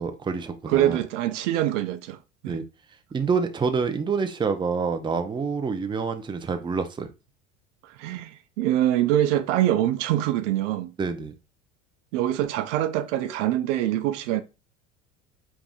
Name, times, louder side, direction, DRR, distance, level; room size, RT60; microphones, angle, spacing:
voice 1, 0.0-1.0 2.5-2.6 3.1-7.1 11.0-11.3, right 5 dB, 10° right, 0.6 m, -27 dB
voice 2, 0.7-2.2 2.4-2.6 7.8-10.9 12.1-14.4, right 13 dB, 65° right, 0.6 m, -24 dB
4.8 x 3.6 x 2.4 m
hypercardioid pair, 75°, 39 cm